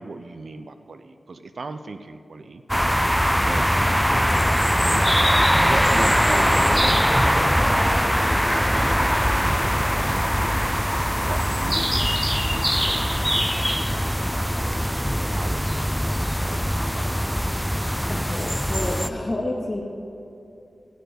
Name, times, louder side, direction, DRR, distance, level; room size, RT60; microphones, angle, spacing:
voice 1, 0.0-2.6 3.4-5.1 5.6-8.1 8.4-16.0 16.4-17.3, right 3 dB, 70° right, 9 dB, 0.6 m, -38 dB
sound 1, 2.7-19.1, equal, ahead, 0.4 m, -21 dB
voice 2, 18.1-19.8, left 1 dB, 35° left, -2 dB, 2.0 m, -29 dB
15.0 x 6.9 x 8.1 m, 2.9 s
wide cardioid pair, 90°, 0 cm